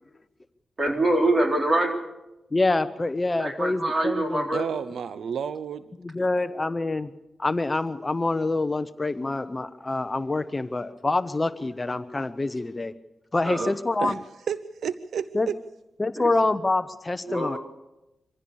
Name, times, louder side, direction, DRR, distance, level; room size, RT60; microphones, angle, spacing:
voice 1, 0.8-2.0 3.4-4.7 13.4-13.7 16.2-16.3 17.3-17.6, right 1 dB, 35° right, 2 dB, 3.9 m, -24 dB
voice 2, 2.5-4.5 6.0-7.1 7.4-12.9 13.3-14.2 15.3-15.5 16.0-17.6, left 2 dB, 25° left, 11 dB, 0.8 m, -26 dB
voice 3, 4.5-5.9 13.6-13.7 14.0-14.2 14.5-15.6, right 7 dB, 85° right, 13 dB, 0.7 m, -31 dB
24.5 x 15.5 x 7.0 m, 0.96 s
wide cardioid pair, 100°, 0 cm